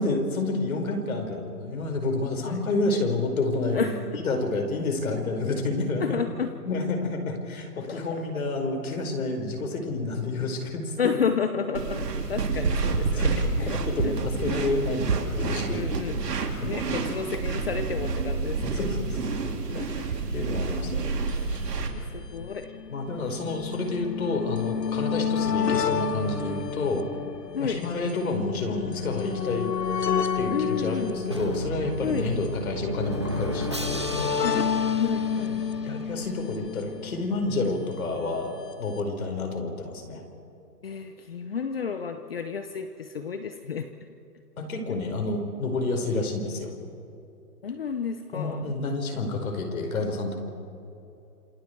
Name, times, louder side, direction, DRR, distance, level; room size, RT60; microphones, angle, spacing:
voice 1, 0.0-3.9 4.2-6.1 6.7-10.9 13.1-15.8 16.6-16.7 18.6-19.3 20.0-20.1 20.3-21.2 22.4-22.5 22.9-27.1 27.6-29.7 30.3-34.3 35.4-40.2 44.6-46.7 48.3-50.4, left 2 dB, 60° left, 4 dB, 5.3 m, -29 dB
voice 2, 6.0-6.5 7.9-8.2 11.0-12.0 12.3-13.8 14.0-14.1 14.6-14.7 15.7-16.2 16.6-18.8 19.7-19.9 20.4-20.5 20.9-21.1 21.9-22.7 27.5-27.8 30.5-31.1 32.0-32.3 34.4-34.7 35.0-35.6 40.8-43.9 47.6-48.7, left 6 dB, 40° left, 8 dB, 1.0 m, -31 dB
sound 1, 11.7-21.9, right 4 dB, 80° right, 3.7 m, -28 dB
sound 2, 21.3-21.4 21.6-21.7 22.5-37.8 38.7-38.8 39.0-39.1, left 7 dB, 90° left, 1.8 m, -30 dB
Drum, 31.3-36.2, equal, 20° right, 0.6 m, -33 dB
29.5 x 27.5 x 4.7 m, 2.8 s
hypercardioid pair, 170°, 47 cm